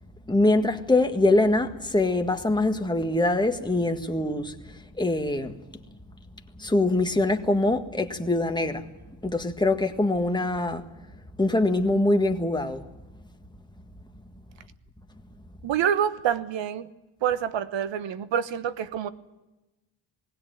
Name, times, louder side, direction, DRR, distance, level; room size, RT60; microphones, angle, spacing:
voice 1, 0.3-5.8 6.6-8.9 9.2-10.9 11.4-12.8, left 2 dB, 10° left, 1.7 m, -24 dB
voice 2, 15.6-16.9 17.2-19.1, right 9 dB, 65° right, 1.2 m, -27 dB
20.0 x 16.5 x 9.1 m
cardioid pair, 80°, 47 cm